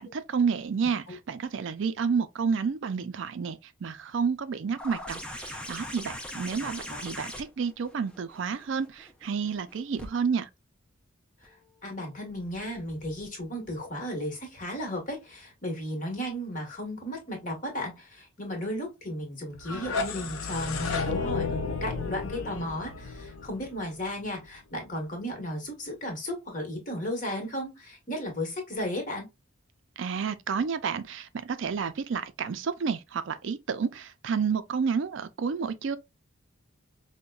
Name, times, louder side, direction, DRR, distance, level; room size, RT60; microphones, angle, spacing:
voice 1, 0.0-10.5 30.0-36.0, right 6 dB, 65° right, 0.4 m, -30 dB
sound 1, 4.8-10.1 11.4-11.5, left 1 dB, 5° left, 0.5 m, -41 dB
voice 2, 11.8-29.3, equal, 40° left, 1.4 m, -35 dB
sound 2, 19.5-24.4, left 4 dB, 80° left, 0.6 m, -32 dB
5.3 x 2.1 x 2.3 m
head